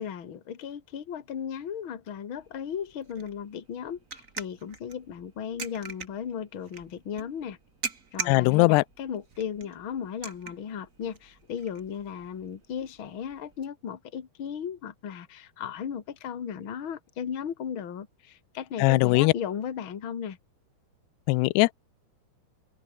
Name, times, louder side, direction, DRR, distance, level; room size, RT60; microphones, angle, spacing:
voice 1, 0.0-7.6 8.1-20.4, left 8 dB, 40° left, 2.2 m, -36 dB
sound 1, 2.4-13.7, right 4 dB, 30° right, 1.5 m, -43 dB
voice 2, 8.3-8.8 18.8-19.3 21.3-21.7, left 23 dB, 80° left, 2.6 m, -20 dB
omnidirectional pair, 4.9 m